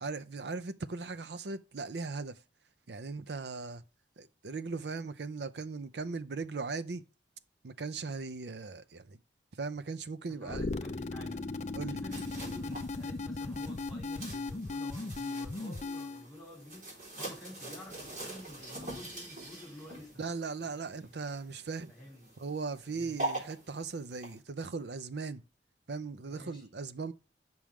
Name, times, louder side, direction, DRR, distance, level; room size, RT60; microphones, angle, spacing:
voice 1, 0.0-2.4 2.9-3.8 4.2-7.0 7.6-9.2 9.6-10.7 11.7-12.0 20.2-21.9 22.4-25.4 25.9-27.1, right 4 dB, 70° right, 0.6 m, -38 dB
voice 2, 10.3-11.4 11.8-20.3 20.6-21.1 21.9-22.3 22.8-23.2 26.3-26.7, left 1 dB, ahead, 3.8 m, -50 dB
sound 1, 10.5-16.3, left 3 dB, 40° left, 0.5 m, -37 dB
sound 2, 12.1-24.4, right 2 dB, 45° right, 4.0 m, -44 dB
7.4 x 6.1 x 3.5 m
head